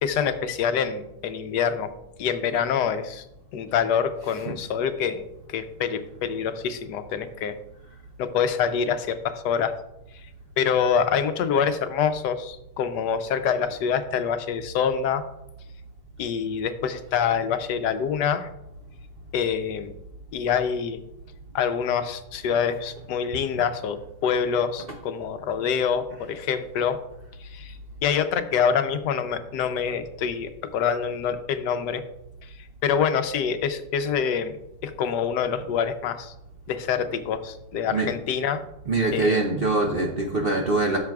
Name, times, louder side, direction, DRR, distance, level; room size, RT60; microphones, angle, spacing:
voice 1, 0.0-1.9 2.2-3.2 3.5-5.2 5.5-7.6 8.2-9.7 10.6-15.2 16.2-18.5 19.3-19.9 20.3-21.0 21.5-27.0 27.4-32.0 32.8-34.6 34.8-36.3 36.7-38.6 39.1-39.4, left 7 dB, 75° left, 9 dB, 1.2 m, -26 dB
voice 2, 38.9-41.0, right 3 dB, 50° right, 1 dB, 0.7 m, -23 dB
13.0 x 6.7 x 2.3 m, 0.87 s
omnidirectional pair, 1.9 m